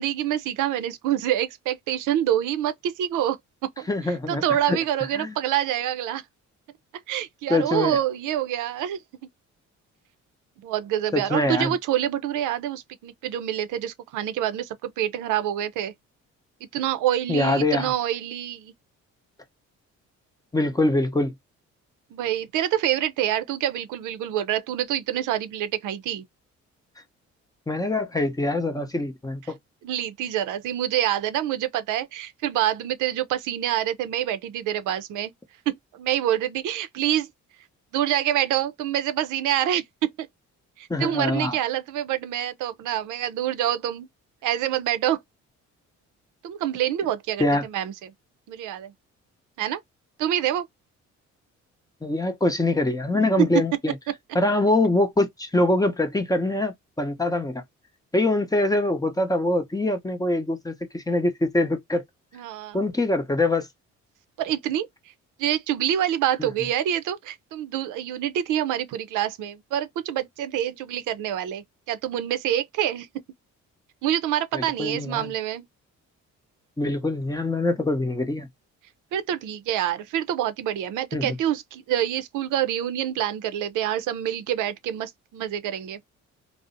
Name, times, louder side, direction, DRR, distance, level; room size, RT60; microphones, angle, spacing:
voice 1, 0.0-3.9 4.3-6.2 7.1-9.0 10.6-15.9 16.7-18.7 22.1-26.2 29.8-35.3 35.7-37.3 37.9-40.3 40.8-44.1 44.4-45.2 46.4-48.1 48.5-48.9 49.6-49.8 50.2-50.6 53.4-53.5 62.3-62.8 64.4-64.9 65.4-73.1 74.0-75.7 79.1-86.0, right 11 dB, 85° right, 0.5 m, -26 dB
voice 2, 3.9-4.8 5.1-5.3 7.5-8.0 11.1-11.7 17.3-17.9 20.5-21.3 27.7-29.6 40.9-41.6 47.4-47.6 52.0-54.0 54.3-57.6 58.1-62.0 62.7-63.7 66.4-66.5 74.5-75.3 76.8-78.5 81.1-81.4, left 2 dB, 10° left, 0.6 m, -24 dB
2.5 x 2.0 x 2.5 m
cardioid pair, 90°, 30 cm